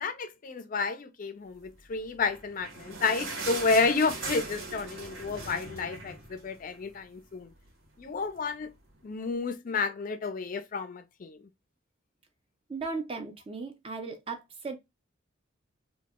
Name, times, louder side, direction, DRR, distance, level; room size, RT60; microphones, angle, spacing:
voice 1, 0.0-7.5 8.0-8.7 9.0-11.4, left 4 dB, 40° left, 0.4 m, -31 dB
sound 1, 2.2-6.9 7.3-7.4 7.7-7.9 8.5-8.6, right 3 dB, 70° right, 0.8 m, -39 dB
voice 2, 12.7-14.8, right 4 dB, 30° right, 0.4 m, -36 dB
2.1 x 2.0 x 3.4 m
head